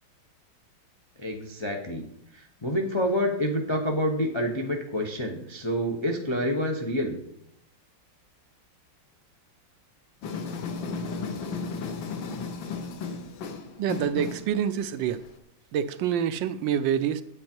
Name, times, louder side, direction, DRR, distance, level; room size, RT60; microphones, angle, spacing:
voice 1, 1.2-2.0 2.3-7.2, equal, 45° left, 1 dB, 0.3 m, -28 dB
sound 1, 10.2-15.4, left 4 dB, 70° left, 1.7 m, -34 dB
voice 2, 13.8-15.2 15.7-17.2, right 9 dB, 75° right, 12 dB, 1.2 m, -27 dB
8.5 x 8.5 x 4.4 m, 0.75 s
omnidirectional pair, 2.2 m